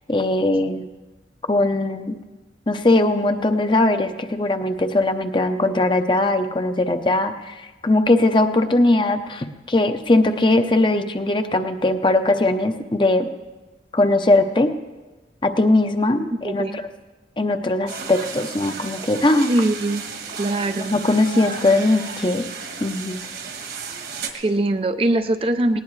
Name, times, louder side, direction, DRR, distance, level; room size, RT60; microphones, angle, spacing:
voice 1, 0.1-0.9 1.5-2.1 2.7-13.3 13.9-14.7 15.4-16.8 17.4-19.5 20.8-22.4 22.8-23.2, left 2 dB, 25° left, 7 dB, 0.7 m, -20 dB
voice 2, 16.4-16.9 19.5-20.1 20.4-20.9 24.3-25.8, right 1 dB, 30° right, 9 dB, 0.5 m, -22 dB
sound 1, 17.9-24.3, right 5 dB, 55° right, 1.5 m, -33 dB
19.0 x 18.5 x 3.2 m, 1.2 s
head